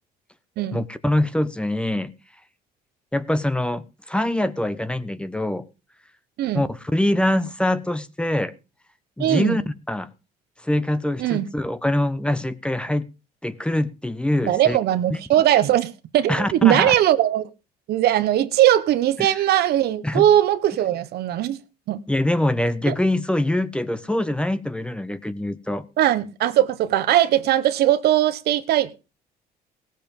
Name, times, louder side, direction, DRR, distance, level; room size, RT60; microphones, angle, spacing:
voice 1, 0.7-2.1 3.1-5.7 6.5-8.5 9.2-10.1 10.6-13.1 13.4-14.8 15.1-15.2 16.3-16.9 19.2-19.3 20.0-20.3 22.1-25.8, left 1 dB, 5° left, 1.0 m, -24 dB
voice 2, 9.2-9.6 11.2-11.5 14.4-17.5 17.9-21.6 21.9-22.0 22.8-22.9 26.0-29.0, right 12 dB, 70° right, 1.1 m, -20 dB
17.5 x 7.5 x 5.4 m
cardioid pair, 110°, 17 cm